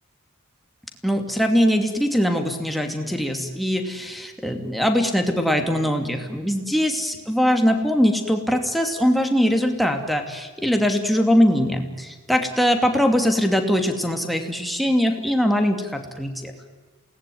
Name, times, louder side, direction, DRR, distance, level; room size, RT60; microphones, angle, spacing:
voice 1, 1.0-16.5, equal, ahead, 3 dB, 2.7 m, -21 dB
28.0 x 19.0 x 9.4 m, 1.4 s
head